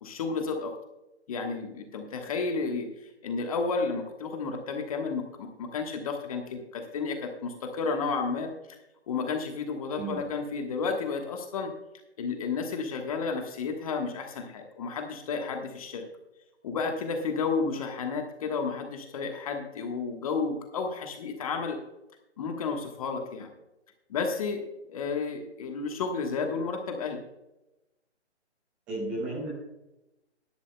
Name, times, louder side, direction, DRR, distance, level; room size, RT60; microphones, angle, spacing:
voice 1, 0.0-0.7 1.3-8.5 9.1-11.7 12.2-16.0 16.6-21.8 22.4-23.5 24.1-24.6 24.9-27.2, left 4 dB, 30° left, 4 dB, 1.3 m, -32 dB
voice 2, 28.9-29.5, right 2 dB, 5° right, -4 dB, 0.5 m, -33 dB
15.0 x 11.5 x 2.2 m, 0.95 s
figure-of-eight pair, 145°, 34 cm